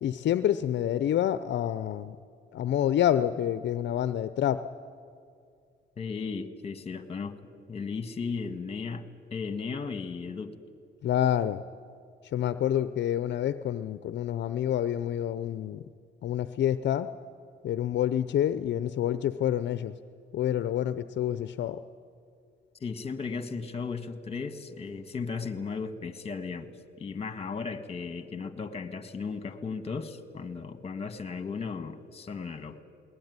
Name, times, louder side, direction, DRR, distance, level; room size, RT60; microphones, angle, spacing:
voice 1, 0.0-2.2 2.5-4.6 11.0-11.6 12.3-15.8 16.2-17.1 17.6-19.9 20.3-21.8, left 10 dB, 65° left, 13 dB, 0.6 m, -28 dB
voice 2, 6.0-7.4 7.7-10.6 22.8-26.7 27.0-32.8, left 5 dB, 30° left, 10 dB, 1.7 m, -36 dB
21.0 x 19.0 x 9.6 m, 2.3 s
cardioid pair, 90°, 20 cm